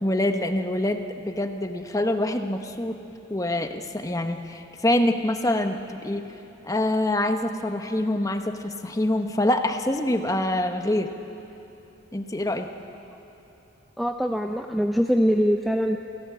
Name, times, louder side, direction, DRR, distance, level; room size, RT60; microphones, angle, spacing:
voice 1, 0.0-3.0 3.3-6.2 6.6-11.1 12.1-12.7, left 1 dB, 15° left, 6 dB, 1.0 m, -25 dB
voice 2, 14.0-16.0, equal, ahead, 3 dB, 0.5 m, -23 dB
28.5 x 16.0 x 8.6 m, 3.0 s
head